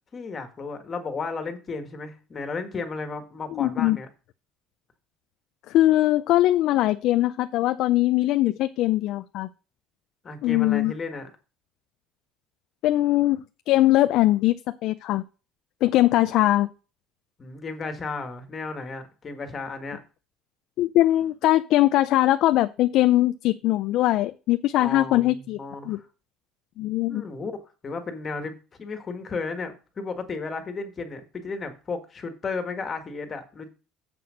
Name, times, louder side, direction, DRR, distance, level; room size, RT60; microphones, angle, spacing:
voice 1, 0.1-4.1 10.2-11.3 17.4-20.0 24.8-26.1 27.1-27.5 27.8-33.7, left 4 dB, 25° left, 7 dB, 1.7 m, -34 dB
voice 2, 3.5-4.0 5.7-9.5 10.4-10.9 12.8-14.6 14.8-15.2 15.8-16.7 20.8-25.6 25.9-26.0 26.8-27.2, left 15 dB, 60° left, 11 dB, 0.4 m, -21 dB
7.6 x 6.0 x 6.3 m, 0.33 s
cardioid pair, 150°, 0 cm